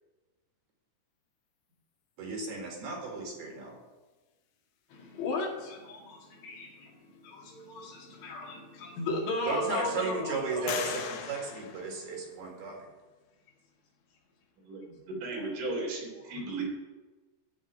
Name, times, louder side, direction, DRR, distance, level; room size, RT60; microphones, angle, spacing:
voice 1, 2.2-3.8 9.5-12.9, right 3 dB, 60° right, -1 dB, 3.8 m, -35 dB
voice 2, 4.9-10.9, left 2 dB, 70° left, -1 dB, 4.2 m, -36 dB
sound 1, 8.4-8.5 9.1-9.8 10.7-12.6, left 7 dB, 90° left, 3.7 m, -40 dB
voice 3, 14.6-16.6, right 2 dB, 80° right, -2 dB, 5.9 m, -36 dB
14.5 x 5.0 x 9.2 m, 1.2 s
omnidirectional pair, 5.5 m